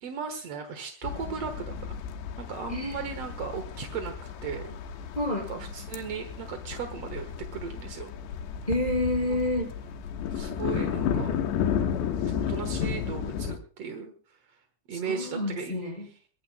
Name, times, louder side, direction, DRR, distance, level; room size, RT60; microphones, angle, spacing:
voice 1, 0.0-2.0 2.4-4.1 4.4-4.8 5.5-8.1 9.3-9.4 10.3-11.3 12.2-14.6 14.9-15.8, right 6 dB, 65° right, 6 dB, 1.6 m, -37 dB
sound 1, 1.0-13.6, left 8 dB, 85° left, 3.4 m, -33 dB
voice 2, 2.7-3.2 5.1-5.5 8.7-9.7 14.9-16.1, left 1 dB, 10° left, 0 dB, 5.2 m, -29 dB
23.0 x 18.5 x 2.2 m, 0.39 s
omnidirectional pair, 4.9 m